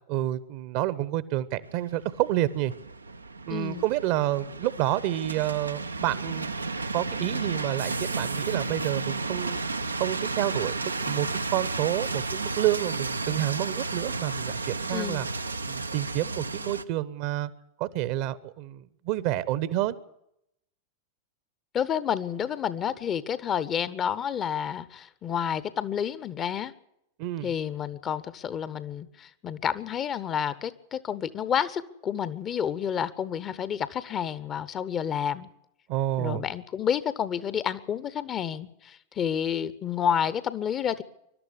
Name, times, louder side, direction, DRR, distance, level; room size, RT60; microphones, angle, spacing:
voice 1, 0.1-2.7 3.5-6.5 6.9-9.6 10.0-15.3 15.7-17.5 17.8-19.9 27.2-27.5 35.9-36.5, right 14 dB, 45° right, 18 dB, 0.9 m, -29 dB
sound 1, 1.6-16.8, right 3 dB, 80° right, 0.7 m, -33 dB
voice 2, 3.5-3.8 14.9-15.3 21.7-26.7 27.4-35.5 36.2-41.0, left 8 dB, 30° left, 17 dB, 0.9 m, -30 dB
22.0 x 12.0 x 9.8 m, 0.80 s
figure-of-eight pair, 90°, 0 cm